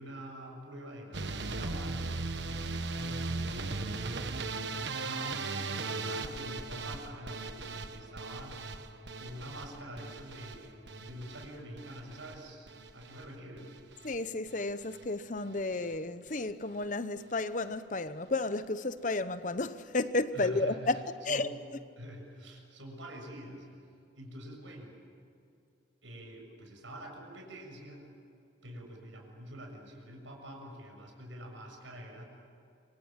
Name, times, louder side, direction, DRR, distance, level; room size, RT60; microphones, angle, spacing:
voice 1, 0.0-2.2 2.9-4.6 5.0-8.6 9.2-13.7 20.3-21.0 21.3-21.5 22.0-23.7 24.1-25.0 26.0-28.1 28.6-32.2, right 1 dB, 85° right, 7.0 m, -46 dB
sound 1, 1.1-12.9, right 1 dB, ahead, 5.1 m, -61 dB
sound 2, 1.1-13.3 13.6-14.2 14.5-15.1 15.4-15.6 15.9-16.0 16.3-16.4, right 3 dB, 65° right, 1.4 m, -38 dB
voice 2, 14.0-21.5, left 2 dB, 40° left, 0.9 m, -32 dB
27.0 x 25.5 x 7.4 m
head